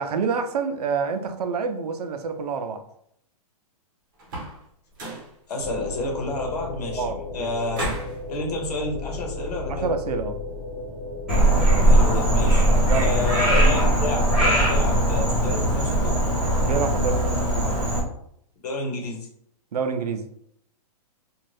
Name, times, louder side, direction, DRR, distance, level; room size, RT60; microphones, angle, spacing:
voice 1, 0.0-2.8 7.0-7.5 9.7-10.4 12.9-13.1 16.6-17.7 19.7-20.3, right 5 dB, 75° right, 8 dB, 0.5 m, -27 dB
sound 1, 4.2-4.6 4.9-5.3 7.7-8.2, right 1 dB, 35° right, 0.8 m, -32 dB
voice 2, 5.5-7.8 8.3-9.9 11.8-12.7 13.0-16.1 18.6-19.3, left 2 dB, 80° left, 0 dB, 1.1 m, -30 dB
sound 2, 5.6-13.4, left 3 dB, 45° left, 1.1 m, -34 dB
Frog, 11.3-18.0, right 1 dB, 5° right, 0.9 m, -20 dB
2.6 x 2.4 x 3.2 m, 0.71 s
hypercardioid pair, 180°, 20 cm